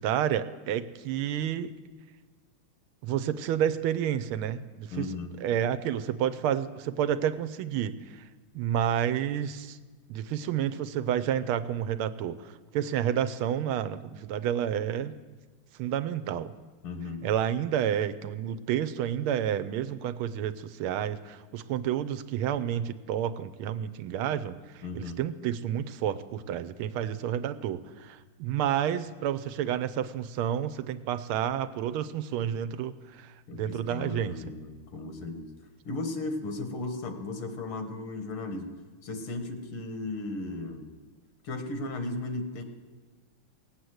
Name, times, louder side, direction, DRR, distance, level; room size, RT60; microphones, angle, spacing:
voice 1, 0.0-1.7 3.0-5.1 5.4-8.2 8.5-9.8 10.1-15.1 15.8-16.5 17.2-34.4, right 10 dB, 85° right, 12 dB, 1.5 m, -30 dB
voice 2, 4.9-5.4 16.8-17.2 24.8-25.2 33.5-35.5 35.9-38.7 39.0-40.9 41.4-42.6, left 2 dB, 80° left, 7 dB, 2.4 m, -36 dB
18.0 x 8.3 x 7.9 m, 1.3 s
omnidirectional pair, 2.4 m